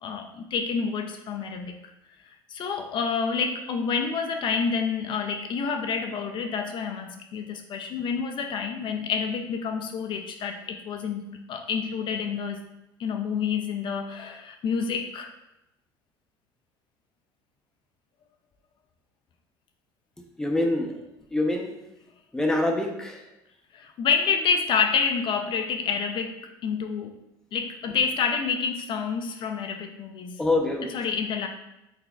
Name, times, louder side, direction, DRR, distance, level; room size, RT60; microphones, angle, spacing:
voice 1, 0.0-1.7 2.2-12.6 13.0-15.3 23.7-27.2 27.5-30.4 30.9-31.5, left 6 dB, 50° left, 4 dB, 0.4 m, -28 dB
voice 2, 20.4-21.0 21.3-21.7 22.3-23.3 30.4-30.9, left 2 dB, 5° left, 2 dB, 0.6 m, -25 dB
4.1 x 3.9 x 2.3 m, 0.90 s
supercardioid pair, 95°, 11 cm